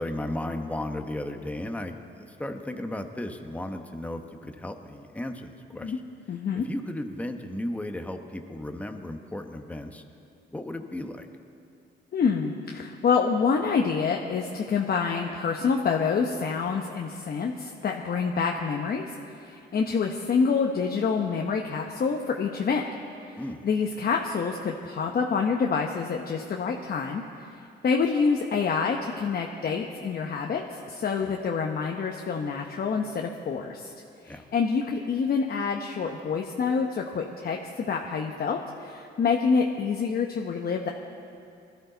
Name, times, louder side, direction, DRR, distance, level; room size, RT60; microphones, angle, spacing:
voice 1, 0.0-6.0 6.6-10.0 10.5-11.3 23.4-23.6 31.2-31.4 34.3-34.4, left 1 dB, 5° left, 5 dB, 1.1 m, -35 dB
voice 2, 6.3-6.7 12.1-19.1 19.4-22.9 23.3-27.2 27.8-33.9 34.2-37.6 37.9-40.9, left 5 dB, 50° left, 1 dB, 1.0 m, -27 dB
20.5 x 13.0 x 4.0 m, 2.5 s
cardioid pair, 90°, 20 cm